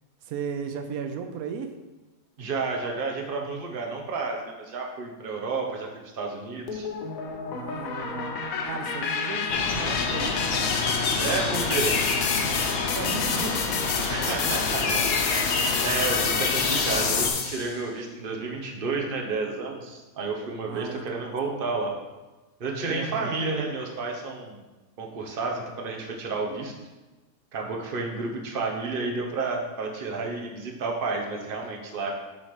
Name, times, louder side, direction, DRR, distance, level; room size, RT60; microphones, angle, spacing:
voice 1, 0.2-1.7 7.5-8.4 8.7-10.8 12.9-13.9 20.7-21.8 22.8-23.4, right 6 dB, 90° right, 7 dB, 1.1 m, -36 dB
voice 2, 2.4-5.9 6.1-6.9 11.2-12.0 14.1-21.9 22.6-24.6 25.0-26.7 27.5-32.1, right 3 dB, 40° right, 1 dB, 1.1 m, -31 dB
sound 1, 6.7-17.8, left 5 dB, 80° left, 1.2 m, -28 dB
sound 2, 9.5-17.3, left 4 dB, 60° left, 1.0 m, -29 dB
7.3 x 4.2 x 4.8 m, 1.1 s
omnidirectional pair, 1.5 m